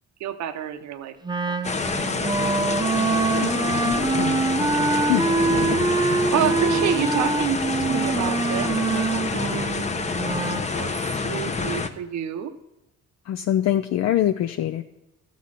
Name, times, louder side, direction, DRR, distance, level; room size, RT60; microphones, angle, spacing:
voice 1, 0.2-1.2 1.5-2.3 6.3-9.9 10.7-12.5, right 10 dB, 65° right, 9 dB, 0.7 m, -30 dB
Wind instrument woodwind instrument, 1.2-10.7, right 4 dB, 15° right, 0.5 m, -25 dB
sound 1, 1.6-11.9, left 4 dB, 25° left, 0.7 m, -27 dB
voice 2, 3.3-4.8 5.1-5.3 6.1-6.2 13.3-14.8, left 12 dB, 60° left, 8 dB, 0.5 m, -25 dB
12.5 x 4.2 x 7.4 m, 0.95 s
cardioid pair, 90°, 30 cm